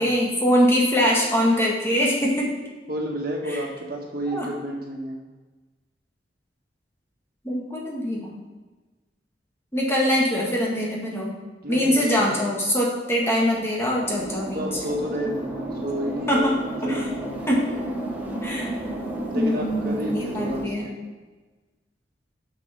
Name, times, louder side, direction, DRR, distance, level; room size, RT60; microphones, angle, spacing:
voice 1, 0.0-2.5 3.5-3.6 4.3-4.5 7.4-8.4 9.7-11.3 11.7-14.7 16.3-16.5 16.8-17.1 17.5-17.6 18.4-18.7 19.3-20.9, equal, 15° left, -3 dB, 1.8 m, -23 dB
voice 2, 2.9-5.2 11.6-12.3 14.5-16.5 16.8-17.4 19.3-20.7, equal, 55° right, -1 dB, 1.7 m, -30 dB
sound 1, 14.0-20.6, right 1 dB, 10° right, 1.3 m, -32 dB
6.8 x 6.0 x 5.7 m, 1.2 s
head